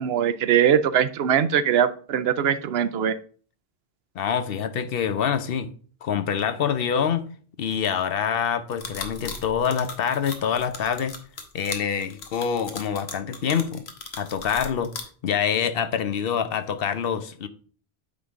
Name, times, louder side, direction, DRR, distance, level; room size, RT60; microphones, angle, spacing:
voice 1, 0.0-3.2, right 9 dB, 80° right, 0.8 m, -21 dB
voice 2, 4.2-5.7 6.0-7.3 7.6-11.2 11.5-13.8 14.2-14.9 15.2-17.5, left 7 dB, 65° left, 0.9 m, -26 dB
sound 1, 8.7-15.0, left 4 dB, 85° left, 1.4 m, -37 dB
8.6 x 3.9 x 4.8 m
omnidirectional pair, 1.0 m